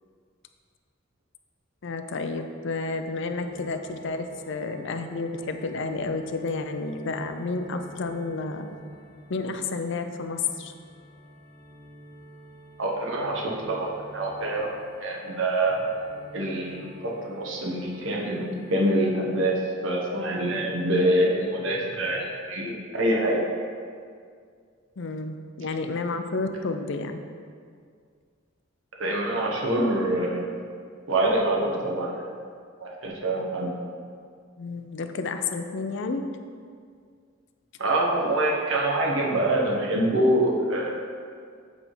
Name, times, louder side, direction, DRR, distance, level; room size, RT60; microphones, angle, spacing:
voice 1, 1.8-8.7 9.3-10.7 16.6-16.8 25.0-27.2 34.6-36.2, left 3 dB, 65° left, 7 dB, 0.5 m, -31 dB
sound 1, 3.3-18.8, right 1 dB, 30° right, 1.7 m, -49 dB
voice 2, 12.8-14.7 15.0-15.9 16.3-23.4 29.0-30.5 31.1-32.2 32.8-33.7 37.8-40.9, right 1 dB, 70° right, -2 dB, 1.2 m, -25 dB
8.1 x 3.5 x 5.4 m, 2.1 s
head